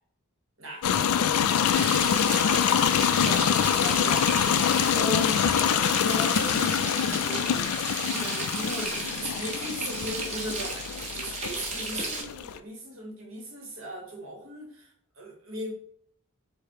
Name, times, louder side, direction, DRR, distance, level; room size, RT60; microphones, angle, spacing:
sound 1, 0.8-12.6, left 8 dB, 75° left, 0.3 m, -25 dB
voice 1, 1.5-2.4 2.8-4.3 4.9-14.9 15.2-15.7, equal, 60° right, 0 dB, 1.2 m, -38 dB
Frying (food), 1.7-12.2, right 3 dB, 30° right, 0.8 m, -34 dB
4.9 x 2.1 x 4.6 m, 0.68 s
head